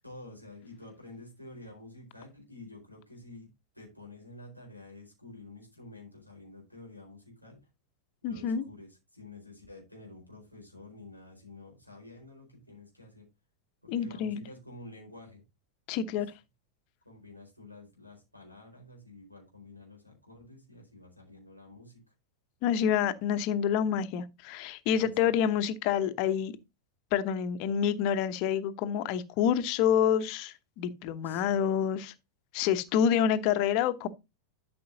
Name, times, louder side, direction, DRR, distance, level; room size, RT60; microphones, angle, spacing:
voice 1, 0.0-3.5 3.7-7.7 8.2-13.3 13.8-15.4 16.1-16.2 17.0-22.0 25.0-25.4 31.2-31.5, left 2 dB, 90° right, 4.3 m, -50 dB
voice 2, 8.2-8.6 13.9-14.4 15.9-16.3 22.6-26.5 27.1-32.1 32.5-34.1, left 8 dB, 45° left, 0.9 m, -27 dB
12.5 x 6.0 x 2.7 m
figure-of-eight pair, 90°, 0 cm